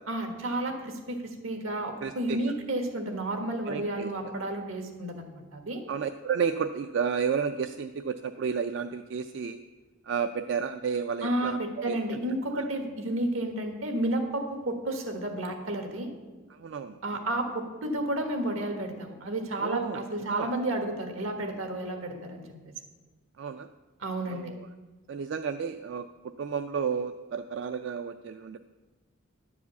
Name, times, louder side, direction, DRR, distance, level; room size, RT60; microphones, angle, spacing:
voice 1, 0.1-5.8 11.2-16.1 17.0-22.5 24.0-24.4, right 1 dB, 85° right, 5 dB, 1.5 m, -31 dB
voice 2, 2.0-2.5 3.7-4.1 5.9-9.6 10.0-12.2 12.5-12.6 16.5-17.2 19.6-20.5 23.4-23.7 24.3-24.7 25.1-28.6, right 6 dB, 60° right, 9 dB, 0.3 m, -32 dB
10.5 x 4.9 x 8.1 m, 1.3 s
head